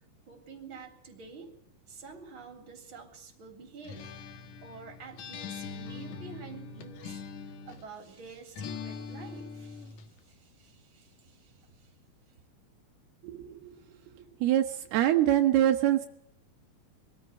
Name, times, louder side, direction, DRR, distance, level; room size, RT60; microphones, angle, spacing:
voice 1, 0.3-1.5 1.9-4.1 4.6-11.9, right 4 dB, 30° right, 5 dB, 4.0 m, -49 dB
Acoustic guitar, 3.8-8.0 8.6-10.1, left 5 dB, 60° left, 2.5 m, -42 dB
voice 2, 13.2-13.8 14.1-16.1, right 12 dB, 80° right, 5 dB, 3.1 m, -25 dB
22.5 x 14.0 x 9.2 m, 0.71 s
omnidirectional pair, 4.6 m